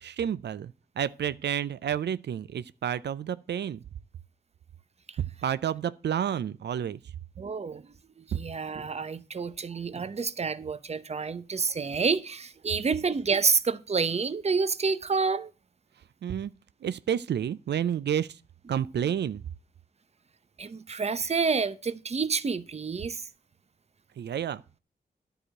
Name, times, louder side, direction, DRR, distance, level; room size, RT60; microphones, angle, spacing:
voice 1, 0.0-3.8 5.2-7.0 8.3-8.4 16.2-16.5 16.8-18.4 18.7-19.4 24.2-24.6, right 9 dB, 90° right, 0.4 m, -30 dB
voice 2, 7.4-7.9 8.3-15.5 20.6-23.2, right 5 dB, 40° right, 0.7 m, -28 dB
11.0 x 4.9 x 7.5 m
wide cardioid pair, 110°, 17 cm